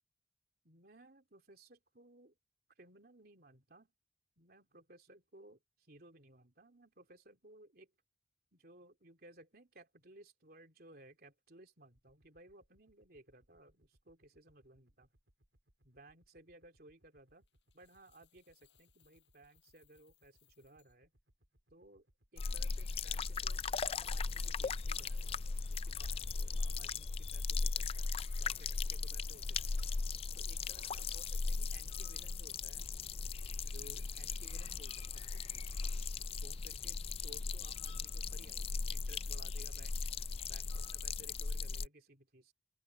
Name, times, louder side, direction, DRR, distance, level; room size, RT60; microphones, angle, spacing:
voice 1, 0.6-2.4 2.8-3.9 4.4-7.9 8.5-15.1 15.8-17.5 17.7-21.1 21.7-22.1 22.3-23.6 23.9-29.8 30.3-32.9 33.6-36.1 36.3-40.0 40.4-42.5, right 1 dB, 60° right, 3.2 m, -60 dB
sound 1, 11.9-29.2, equal, 90° right, 3.5 m, -73 dB
Coin (dropping), 17.5-21.0, left 14 dB, 90° left, 7.0 m, -73 dB
sound 2, 22.4-41.9, left 4 dB, 35° left, 0.4 m, -38 dB
open air
head